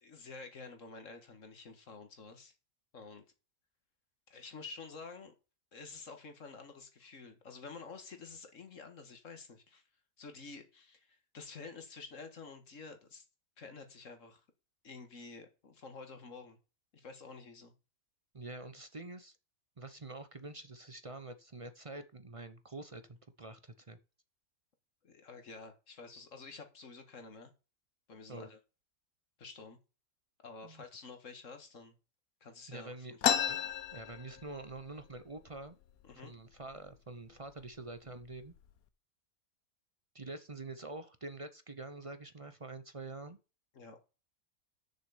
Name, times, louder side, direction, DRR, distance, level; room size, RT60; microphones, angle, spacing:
voice 1, 0.0-2.5 2.9-3.2 4.3-5.3 5.7-9.8 10.2-13.2 13.6-14.4 14.8-16.6 16.9-17.7 25.0-27.5 28.1-28.6 29.4-29.8 30.4-31.9 32.4-33.4 36.0-36.3 43.7-44.0, left 4 dB, 60° left, 7 dB, 1.9 m, -50 dB
voice 2, 18.3-19.4 19.8-24.0 28.3-28.5 30.6-30.8 32.7-33.2 33.5-35.8 36.2-38.5 40.1-43.4, right 2 dB, 35° right, 10 dB, 0.6 m, -46 dB
sound 1, 33.2-34.8 35.2-35.3 35.5-36.1 36.7-36.9 37.6-37.8 38.2-38.7, left 9 dB, 75° left, 1.2 m, -32 dB
6.8 x 6.2 x 7.1 m, 0.32 s
omnidirectional pair, 1.6 m